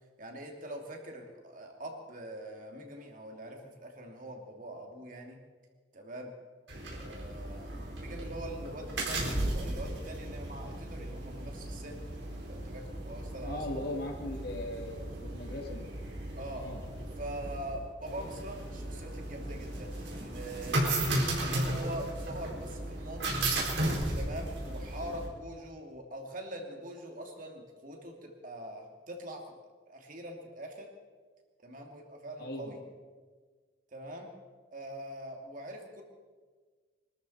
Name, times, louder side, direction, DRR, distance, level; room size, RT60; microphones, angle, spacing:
voice 1, 0.2-5.4 5.9-6.3 6.9-12.0 12.5-13.9 16.4-16.6 17.2-20.9 21.4-23.4 24.1-29.4 29.9-30.9 31.6-32.8 33.9-34.3 34.7-36.0, right 1 dB, 50° right, 2 dB, 2.7 m, -43 dB
sound 1, 6.7-25.3, right 1 dB, 85° right, 4.3 m, -35 dB
voice 2, 13.4-15.8 16.6-16.8 32.4-32.7, left 1 dB, 60° left, 1 dB, 3.0 m, -38 dB
24.5 x 13.5 x 4.3 m, 1.5 s
head